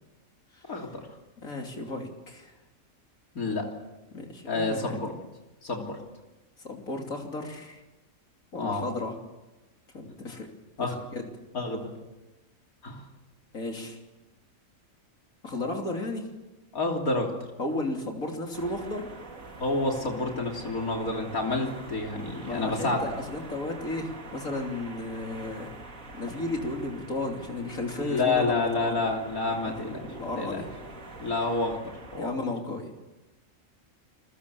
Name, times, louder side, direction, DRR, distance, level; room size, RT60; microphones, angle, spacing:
voice 1, 0.7-1.0 3.4-3.7 4.5-5.1 5.6-6.0 8.5-8.8 10.8-11.0 11.5-11.9 12.8-13.1 16.7-17.3 19.6-23.0 28.0-30.6 31.2-31.8 32.1-32.4, left 3 dB, 90° left, 1 dB, 3.7 m, -29 dB
voice 2, 1.4-2.5 4.1-5.1 6.6-7.8 8.5-9.1 9.9-10.5 10.8-11.3 13.5-14.0 15.4-16.3 17.6-19.1 22.4-25.7 26.1-29.0 29.6-30.7 32.2-32.9, left 2 dB, 75° left, 2 dB, 3.5 m, -34 dB
sound 1, 18.5-32.2, right 2 dB, 70° right, 2.9 m, -45 dB
30.0 x 22.0 x 7.1 m, 1.1 s
omnidirectional pair, 1.4 m